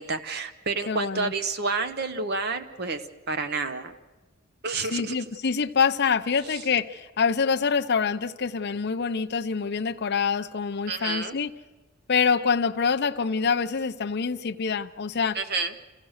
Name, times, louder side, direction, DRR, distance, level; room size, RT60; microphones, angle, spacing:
voice 1, 0.0-3.0 3.3-3.9 4.6-5.2 6.5-6.6 10.9-11.4 15.3-15.7, right 4 dB, 50° right, 0.8 m, -29 dB
voice 2, 0.9-1.3 4.9-11.5 12.1-15.4, left 5 dB, 50° left, 0.6 m, -25 dB
28.0 x 15.5 x 6.4 m
head